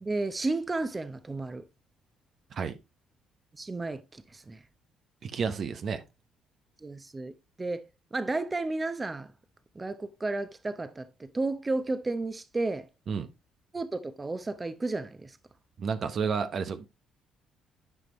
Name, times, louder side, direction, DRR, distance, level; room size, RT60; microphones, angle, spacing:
voice 1, 0.0-1.6 3.5-4.6 6.8-7.3 7.6-7.8 8.1-9.3 9.7-12.9 13.7-15.4, right 2 dB, 25° right, 0.8 m, -32 dB
voice 2, 5.2-6.0 13.1-13.3 15.8-16.8, right 6 dB, 55° right, 0.8 m, -31 dB
9.7 x 5.1 x 3.0 m
supercardioid pair, 60°, 0 cm